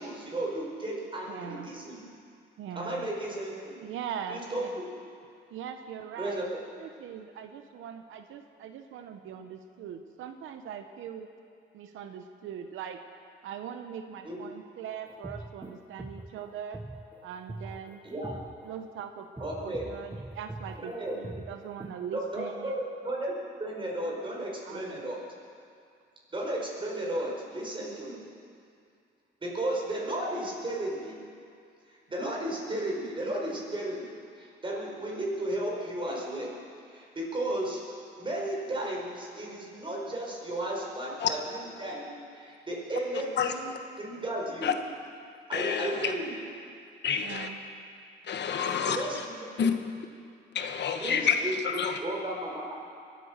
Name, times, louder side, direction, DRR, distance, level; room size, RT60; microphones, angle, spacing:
voice 1, 0.0-2.0 2.7-3.8 4.3-4.9 6.2-6.6 14.2-14.5 18.0-18.3 19.4-19.8 20.8-21.2 22.1-22.7 23.0-23.3 23.6-25.2 26.3-28.2 29.4-31.3 32.1-36.6 36.9-37.8 38.2-43.7 44.0-44.7 45.5-46.4 48.8-49.7 51.0-52.7, right 1 dB, 25° right, -3 dB, 5.2 m, -34 dB
voice 2, 1.3-1.7 2.6-3.1 3.8-4.8 5.5-11.3 11.7-13.0 13.4-16.8 17.2-22.8 24.6-25.1 47.2-47.6, right 8 dB, 80° right, 7 dB, 0.9 m, -41 dB
sound 1, 15.1-22.1, right 2 dB, 10° right, 0.6 m, -43 dB
voice 3, 45.5-46.1 47.0-47.5 48.3-49.2 49.6-49.7 50.5-52.0, left 7 dB, 60° left, 6 dB, 1.2 m, -28 dB
22.5 x 9.2 x 6.7 m, 2.4 s
cardioid pair, 90°, 20 cm